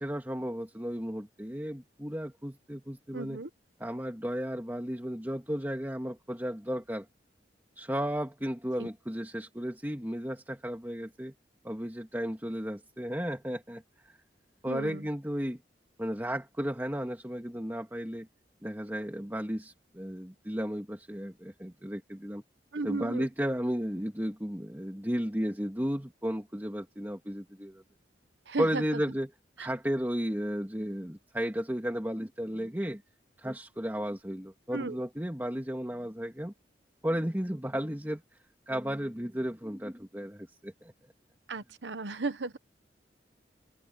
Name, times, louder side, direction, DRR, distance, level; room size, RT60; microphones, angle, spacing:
voice 1, 0.0-3.4 3.8-7.1 7.8-11.3 11.6-14.1 14.6-15.6 16.0-18.3 18.6-22.4 22.8-27.8 28.6-29.3 29.6-33.0 33.4-36.5 37.0-38.2 38.7-40.9, equal, 10° right, 2.1 m, -34 dB
voice 2, 3.1-3.5 8.8-8.9 14.7-15.1 22.7-23.3 28.5-29.0 29.6-29.7 34.7-35.0 41.5-42.6, right 3 dB, 85° right, 1.0 m, -35 dB
head